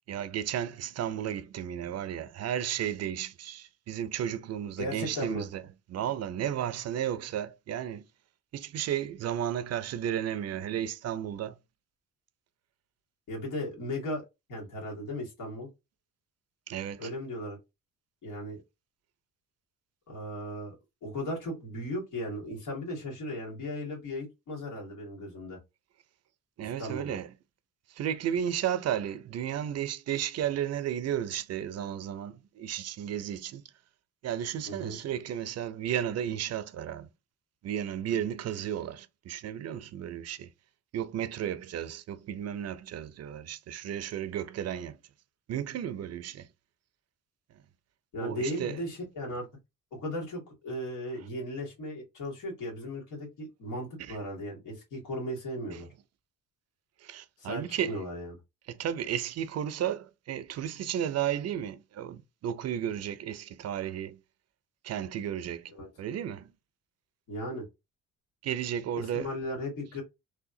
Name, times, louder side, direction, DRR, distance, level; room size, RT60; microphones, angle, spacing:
voice 1, 0.1-5.6 5.9-8.0 8.5-11.6 16.7-17.1 26.6-27.3 27.9-33.6 34.2-37.1 37.6-40.5 40.9-45.0 45.5-46.5 48.2-48.8 54.0-54.2 55.7-55.8 57.0-58.0 58.7-64.2 64.8-65.7 66.0-66.5 68.4-69.3, right 10 dB, 55° right, 0.5 m, -33 dB
voice 2, 4.8-5.5 13.3-14.2 14.5-15.7 17.0-17.6 18.2-18.6 20.1-20.8 21.0-25.6 26.6-27.2 34.7-35.0 48.1-49.5 49.9-55.9 57.4-58.3 65.7-65.9 67.3-67.7 68.9-70.0, left 1 dB, 85° left, 2.0 m, -36 dB
3.3 x 2.7 x 2.6 m
cardioid pair, 90°, 30 cm